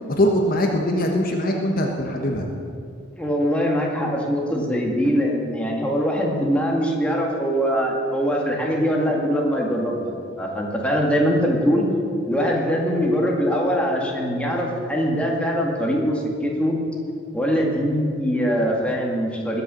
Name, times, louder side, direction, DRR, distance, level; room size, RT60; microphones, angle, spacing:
voice 1, 0.1-2.5, left 1 dB, 50° left, 1 dB, 1.4 m, -22 dB
voice 2, 3.2-11.8 12.3-16.8 17.3-19.6, equal, 5° left, -2 dB, 2.1 m, -22 dB
20.5 x 7.0 x 7.0 m, 2.4 s
head